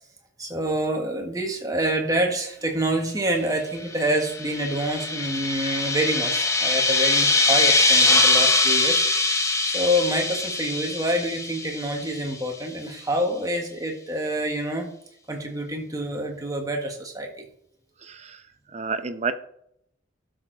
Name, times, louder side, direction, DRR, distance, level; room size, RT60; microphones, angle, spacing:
voice 1, 0.4-14.9 15.3-17.5, right 1 dB, 20° right, 2 dB, 1.6 m, -27 dB
sound 1, 4.0-12.3, left 3 dB, 15° left, 0.9 m, -22 dB
voice 2, 18.0-19.3, right 4 dB, 35° right, 10 dB, 0.7 m, -31 dB
12.5 x 6.6 x 4.0 m, 0.72 s
head